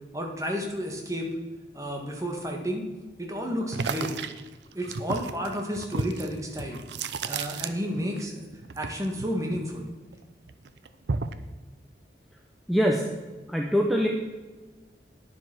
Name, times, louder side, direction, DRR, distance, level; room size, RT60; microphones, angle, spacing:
voice 1, 0.1-1.3 1.7-2.8 3.2-4.1 4.7-6.8 7.2-8.4 8.7-9.9, equal, 20° right, 1 dB, 1.7 m, -31 dB
sound 1, 3.7-8.2 8.5-10.1 10.5-11.5, right 4 dB, 85° right, 0.6 m, -33 dB
voice 2, 12.7-13.0 13.5-14.1, equal, ahead, 0 dB, 0.7 m, -23 dB
9.7 x 7.8 x 6.0 m, 1.2 s
head